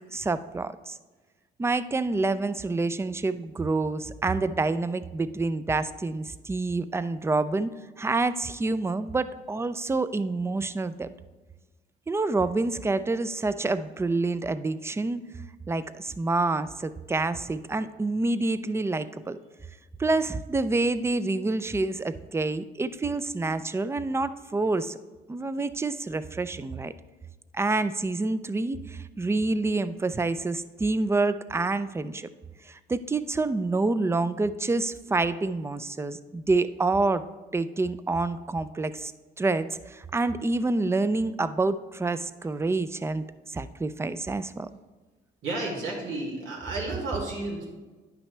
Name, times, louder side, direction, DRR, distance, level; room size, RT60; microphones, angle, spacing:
voice 1, 0.1-1.0 1.6-7.7 8.0-11.1 12.1-15.2 15.7-19.4 20.0-25.0 25.3-26.9 27.5-32.3 32.7-37.3 37.5-39.1 39.4-44.7, right 3 dB, 15° right, 14 dB, 0.4 m, -27 dB
voice 2, 45.4-47.7, right 2 dB, 90° right, -4 dB, 2.4 m, -32 dB
10.0 x 6.0 x 3.3 m, 1.3 s
cardioid pair, 90°, 20 cm